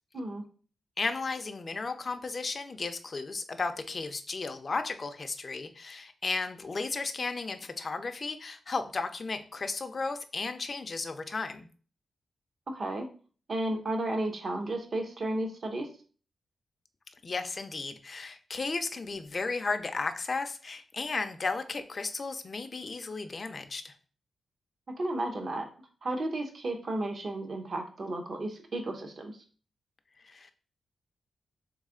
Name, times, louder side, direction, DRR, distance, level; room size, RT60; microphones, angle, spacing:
voice 1, 1.0-11.7 17.2-23.9 30.2-30.5, left 4 dB, 40° left, 7 dB, 0.4 m, -34 dB
voice 2, 12.7-13.0 13.5-15.9 25.0-25.7 26.0-29.4, right 1 dB, 50° right, 4 dB, 0.8 m, -33 dB
3.4 x 3.2 x 3.6 m, 0.40 s
wide cardioid pair, 100°, 0 cm